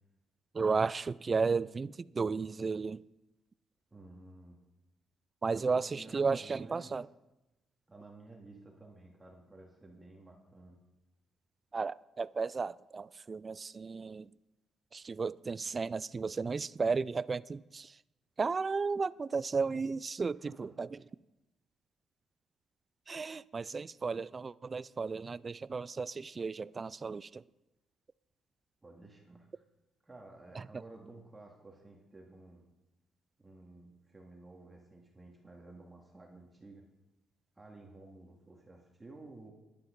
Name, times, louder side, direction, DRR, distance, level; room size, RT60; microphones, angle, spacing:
voice 1, 0.5-3.0 5.4-7.1 11.7-14.3 14.9-17.9 18.4-20.9 23.1-27.4, right 4 dB, 35° right, 0.3 m, -34 dB
voice 2, 3.9-4.6 5.5-7.0 7.9-10.8 20.3-20.7 28.8-29.6 30.0-32.6 33.4-36.8 37.6-39.5, right 2 dB, 20° right, 2.1 m, -53 dB
12.0 x 11.0 x 5.2 m
cardioid pair, 90°, 0 cm